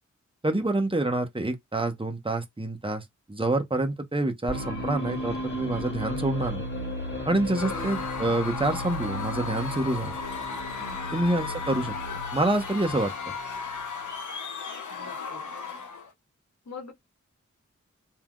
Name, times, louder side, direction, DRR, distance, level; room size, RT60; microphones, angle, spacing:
voice 1, 0.4-3.0 3.3-6.6 7.3-10.1 11.1-11.9 12.3-13.1, right 2 dB, 20° right, 1.0 m, -27 dB
sound 1, 4.5-14.1, equal, 35° left, 1.9 m, -35 dB
Screaming / Cheering / Crowd, 7.5-16.1, left 5 dB, 85° left, 0.9 m, -35 dB
voice 2, 7.6-8.0 10.8-11.2 14.9-15.4 16.6-16.9, left 4 dB, 65° left, 1.3 m, -43 dB
3.3 x 2.8 x 2.4 m
cardioid pair, 45°, 29 cm